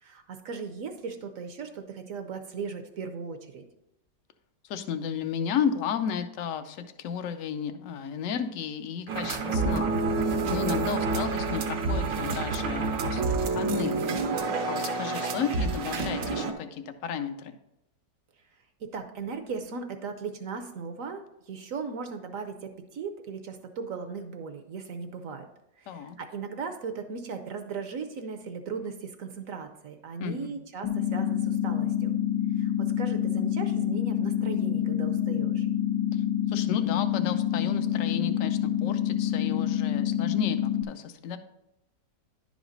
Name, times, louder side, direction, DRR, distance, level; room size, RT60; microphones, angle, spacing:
voice 1, 0.0-3.6 18.8-25.5 25.8-32.1 32.6-35.7, right 5 dB, 60° right, 7 dB, 0.9 m, -37 dB
voice 2, 4.6-14.0 14.7-17.6 25.9-26.2 30.2-30.6 36.1-41.4, left 7 dB, 65° left, 9 dB, 0.8 m, -33 dB
sound 1, 9.1-16.5, right 3 dB, 80° right, 1.5 m, -28 dB
sound 2, 30.8-40.8, left 10 dB, 85° left, 1.3 m, -27 dB
11.0 x 5.0 x 3.9 m, 0.85 s
omnidirectional pair, 1.9 m